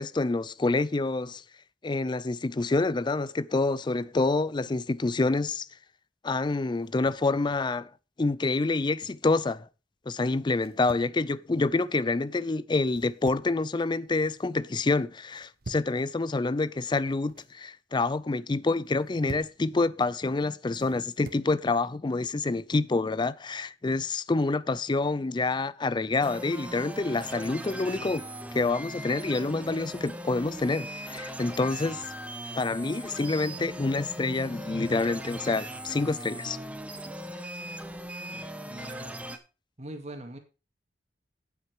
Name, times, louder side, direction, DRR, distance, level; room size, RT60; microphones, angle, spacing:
voice 1, 0.0-1.4 1.8-5.7 6.2-7.9 8.2-9.7 10.1-28.2 28.5-32.0 32.6-36.6, left 3 dB, 25° left, 0.4 m, -27 dB
sound 1, 6.8-7.3 8.6-9.3 10.5-11.1 12.8-13.6 14.0-14.4 15.3-16.0 17.0-17.5 18.8-19.6 20.7-21.5, right 2 dB, 60° right, 1.0 m, -46 dB
sound 2, 26.2-39.4, right 1 dB, 10° right, 1.0 m, -39 dB
voice 2, 38.3-39.2 39.8-40.4, right 1 dB, 40° right, 2.0 m, -42 dB
8.9 x 8.1 x 4.5 m
head